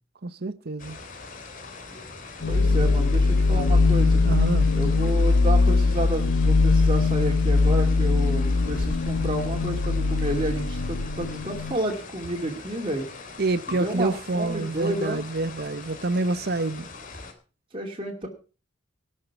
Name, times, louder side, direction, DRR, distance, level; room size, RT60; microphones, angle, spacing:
voice 1, 0.2-1.0 4.2-4.7 13.4-16.9, right 3 dB, 50° right, 0.8 m, -27 dB
sound 1, 0.8-17.3, left 4 dB, 40° left, 3.1 m, -42 dB
sound 2, 2.4-11.7, left 3 dB, 75° left, 1.0 m, -21 dB
voice 2, 2.5-4.2 4.7-13.0 13.7-15.2 17.7-18.3, right 1 dB, 25° right, 2.5 m, -30 dB
18.0 x 6.6 x 6.8 m
head